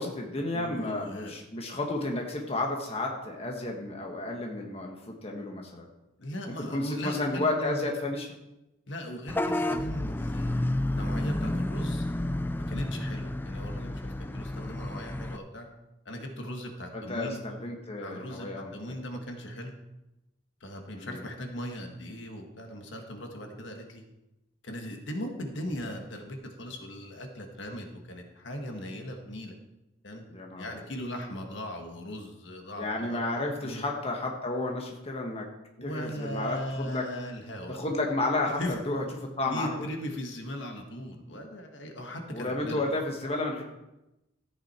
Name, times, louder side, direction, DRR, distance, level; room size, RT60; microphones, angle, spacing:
voice 1, 0.0-5.9 6.6-8.3 16.9-19.0 20.9-21.2 30.3-30.6 32.8-35.4 35.8-37.1 37.7-39.9 42.3-43.6, left 2 dB, 30° left, 1 dB, 1.4 m, -32 dB
voice 2, 0.5-1.4 6.2-7.9 8.9-12.0 12.5-15.7 16.0-17.4 18.0-19.7 20.6-24.0 24.6-29.6 30.0-30.2 30.6-33.2 33.6-33.8 35.8-37.8 38.5-38.8 39.5-42.8, equal, 70° left, 3 dB, 1.6 m, -38 dB
Vehicle horn car horn honking / Bus, 9.3-15.4, left 1 dB, 10° left, 0.3 m, -31 dB
14.0 x 8.9 x 4.4 m, 0.95 s
head